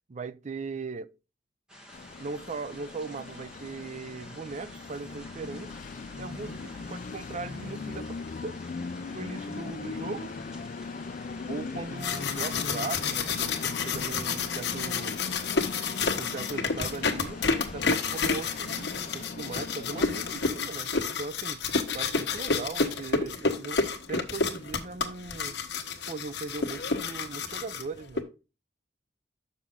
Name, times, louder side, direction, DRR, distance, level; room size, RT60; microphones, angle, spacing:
voice 1, 0.1-1.2 2.2-5.8 6.2-8.6 9.1-10.3 11.5-15.2 16.1-17.4 17.7-20.9 21.2-21.6 21.9-25.6 26.1-28.3, right 4 dB, 40° right, 0.5 m, -39 dB
sound 1, 1.7-19.2, equal, 5° right, 1.6 m, -50 dB
Train, 1.9-20.4, left 4 dB, 45° left, 0.4 m, -39 dB
sound 2, 11.8-28.2, left 4 dB, 70° left, 1.2 m, -30 dB
7.1 x 6.4 x 3.6 m
head